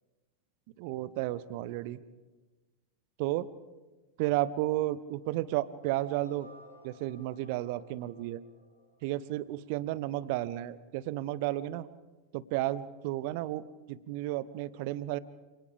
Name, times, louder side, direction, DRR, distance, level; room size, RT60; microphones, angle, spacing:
voice 1, 0.8-2.0 3.2-3.5 4.2-6.5 6.8-8.4 9.0-11.9 12.3-15.2, right 15 dB, 45° right, 18 dB, 0.9 m, -33 dB
sound 1, 5.8-9.7, left 2 dB, 90° left, 2.7 m, -56 dB
29.0 x 27.5 x 3.6 m, 1.2 s
figure-of-eight pair, 90°, 0 cm